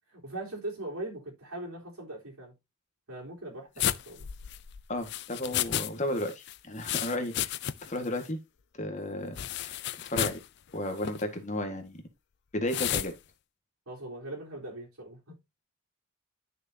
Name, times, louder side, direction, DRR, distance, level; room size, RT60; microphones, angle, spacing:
voice 1, 0.1-2.5 3.1-4.3 13.9-15.4, right 2 dB, 80° right, 4.0 m, -40 dB
sound 1, 3.8-5.9 6.2-8.0 8.2-8.3 9.4-10.4 11.0-11.2 12.7-13.1, left 11 dB, 50° left, 0.4 m, -32 dB
voice 2, 4.9-7.6 7.9-8.4 8.8-9.7 10.0-10.4 10.7-12.0 12.5-13.1, left 1 dB, 35° left, 1.8 m, -33 dB
11.0 x 6.5 x 2.8 m
head